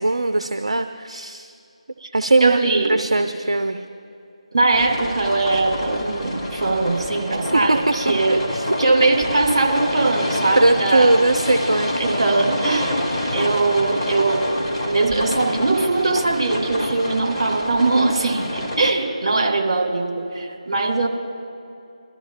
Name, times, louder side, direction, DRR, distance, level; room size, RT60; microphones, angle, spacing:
voice 1, 0.0-1.5 2.1-2.6 2.9-3.8 7.5-7.8 8.3-8.7 10.5-12.3, right 2 dB, 65° right, 7 dB, 0.6 m, -20 dB
voice 2, 2.4-2.9 4.5-8.4 8.8-11.1 12.0-13.0 13.3-14.5 14.9-21.1, right 3 dB, 50° right, 0 dB, 2.5 m, -21 dB
sound 1, 4.7-18.9, left 1 dB, 15° left, 1.9 m, -27 dB
23.5 x 13.0 x 2.5 m, 2.6 s
figure-of-eight pair, 155°, 4 cm